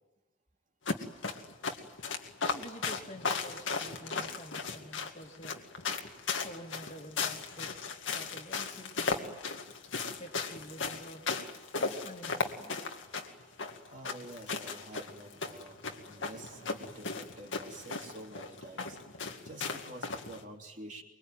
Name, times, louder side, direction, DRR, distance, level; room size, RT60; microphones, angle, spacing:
sound 1, 0.9-20.4, left 4 dB, 80° left, 2.2 m, -36 dB
voice 1, 2.4-5.6 6.4-7.7 8.1-9.3 10.2-11.3 11.8-12.8, equal, 35° left, 3 dB, 2.5 m, -48 dB
voice 2, 13.9-21.0, right 1 dB, 40° right, 1 dB, 3.2 m, -49 dB
24.5 x 23.0 x 9.1 m, 1.1 s
head